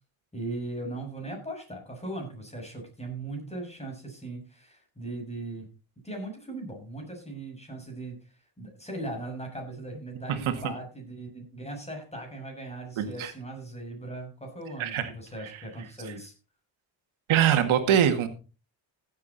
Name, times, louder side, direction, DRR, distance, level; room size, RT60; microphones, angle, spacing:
voice 1, 0.3-5.7 6.0-8.2 8.6-16.3, right 2 dB, 15° left, 2 dB, 6.2 m, -38 dB
voice 2, 13.0-13.3 14.8-15.1 17.3-18.3, right 9 dB, 90° right, 7 dB, 2.2 m, -23 dB
15.5 x 8.3 x 4.2 m, 0.33 s
cardioid pair, 110°, 47 cm